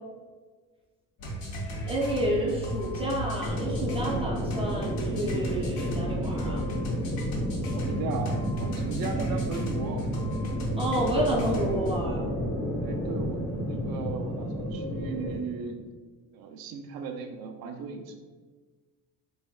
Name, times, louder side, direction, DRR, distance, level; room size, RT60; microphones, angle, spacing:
sound 1, 1.2-12.0, right 1 dB, 75° left, 0.9 m, -34 dB
voice 1, 1.9-6.7 10.8-12.3, right 1 dB, 15° right, -4 dB, 0.4 m, -30 dB
sound 2, 3.4-15.4, equal, 35° left, 0.8 m, -31 dB
voice 2, 7.7-10.1 11.5-11.6 12.8-15.8 16.3-18.1, right 5 dB, 75° right, 5 dB, 0.5 m, -37 dB
3.4 x 3.3 x 2.3 m, 1.4 s
cardioid pair, 140°, 36 cm